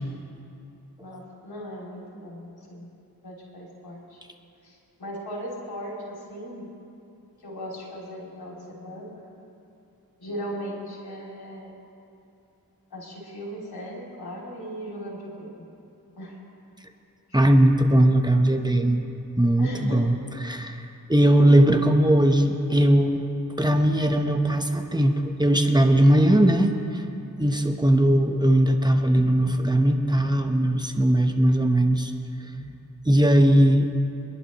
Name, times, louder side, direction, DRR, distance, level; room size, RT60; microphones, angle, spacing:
voice 1, 1.0-2.9 3.2-4.2 4.6-6.7 7.4-9.2 10.2-11.8 12.9-15.6 16.2-16.4 19.6-20.0 21.3-21.7, equal, 85° left, -4 dB, 3.1 m, -38 dB
voice 2, 17.3-19.0 19.4-20.2 20.4-20.8 21.1-23.3 23.6-27.0 27.4-32.1 32.6-32.7 33.1-33.9, right 1 dB, 10° right, 4 dB, 1.1 m, -19 dB
26.0 x 11.0 x 3.1 m, 2.7 s
cardioid pair, 40°, 36 cm